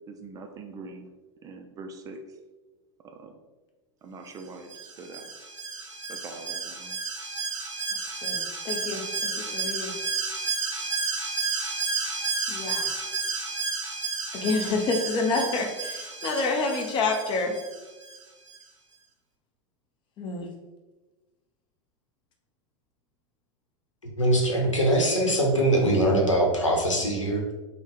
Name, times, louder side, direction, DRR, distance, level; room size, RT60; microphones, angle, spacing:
voice 1, 0.1-1.1 1.4-2.2 3.1-3.3 4.0-5.3 6.1-7.0, right 3 dB, 20° right, 4 dB, 0.3 m, -43 dB
Alarm, 4.7-18.2 18.5-18.6, right 4 dB, 85° right, 0.6 m, -32 dB
voice 2, 8.2-10.0 12.5-13.0 14.3-17.6 20.2-20.5, left 3 dB, 30° left, 2 dB, 0.7 m, -28 dB
voice 3, 24.2-27.4, right 1 dB, 85° left, 0 dB, 0.8 m, -22 dB
3.5 x 2.1 x 3.9 m, 1.2 s
figure-of-eight pair, 90°, 16 cm